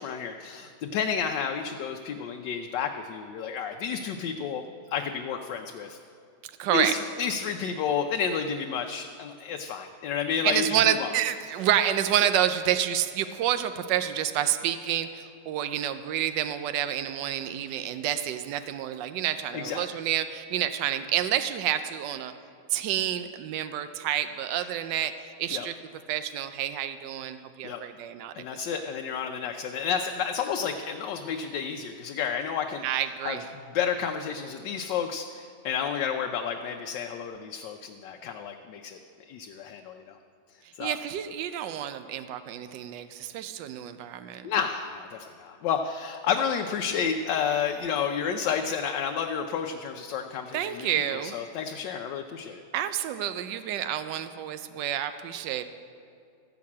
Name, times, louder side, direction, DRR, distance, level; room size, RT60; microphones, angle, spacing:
voice 1, 0.0-4.6 4.9-6.0 6.7-11.1 19.5-19.9 24.6-24.7 25.5-25.7 27.6-27.8 28.3-32.9 33.2-33.4 33.7-39.0 39.3-40.2 40.7-40.9 44.4-52.6, left 7 dB, 85° left, 4 dB, 1.3 m, -31 dB
voice 2, 6.6-6.9 10.4-22.3 22.7-25.1 25.4-25.7 26.1-28.4 32.8-33.4 40.8-44.5 50.5-51.3 52.7-55.6, right 11 dB, 85° right, 10 dB, 1.3 m, -28 dB
13.5 x 6.0 x 8.4 m, 2.4 s
omnidirectional pair, 1.9 m